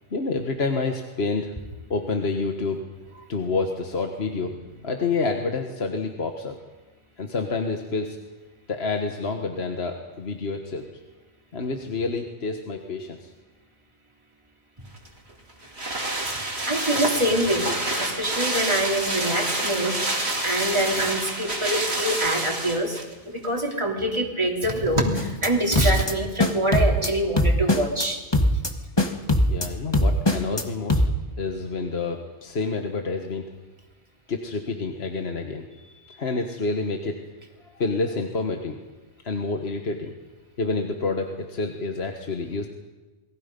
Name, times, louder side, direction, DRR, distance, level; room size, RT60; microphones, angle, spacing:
voice 1, 0.1-1.5 1.9-2.8 3.3-4.5 4.8-6.6 7.2-8.2 8.7-10.8 11.5-13.3 29.5-31.0 31.4-33.4 34.3-35.6 36.2-37.2 37.7-38.8 39.2-40.1 40.6-42.7, left 3 dB, 60° left, 3 dB, 1.7 m, -28 dB
sound 1, 15.0-23.1 23.4-23.5, right 1 dB, 60° right, 3.4 m, -28 dB
voice 2, 16.3-17.7 18.0-20.0 20.4-23.0 23.3-28.2 36.0-36.2, right 1 dB, 25° right, 0 dB, 3.1 m, -25 dB
sound 2, 25.2-25.5 25.8-26.1 26.4-27.1 27.4-28.1 28.3-28.7 29.0-29.7 29.9-30.6 30.9-31.1, left 1 dB, 20° left, 1.5 m, -20 dB
28.5 x 22.0 x 5.3 m, 1.2 s
omnidirectional pair, 1.2 m